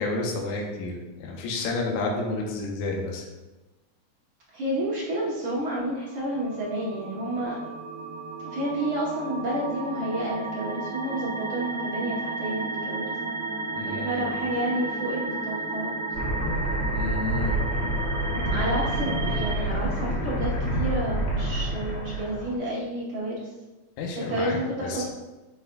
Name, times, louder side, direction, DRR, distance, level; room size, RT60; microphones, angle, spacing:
voice 1, 0.0-3.2 13.8-14.3 16.9-17.6 24.0-25.1, left 2 dB, 75° left, 0 dB, 2.1 m, -30 dB
voice 2, 4.5-7.7 8.4-13.1 13.9-15.9 18.5-23.4 24.3-25.1, right 1 dB, 65° right, -6 dB, 1.3 m, -30 dB
sound 1, 6.3-19.6, right 3 dB, 80° right, 1.3 m, -33 dB
sound 2, 16.1-22.5, right 1 dB, 55° left, 0.4 m, -28 dB
9.3 x 4.8 x 2.2 m, 1.1 s
omnidirectional pair, 3.6 m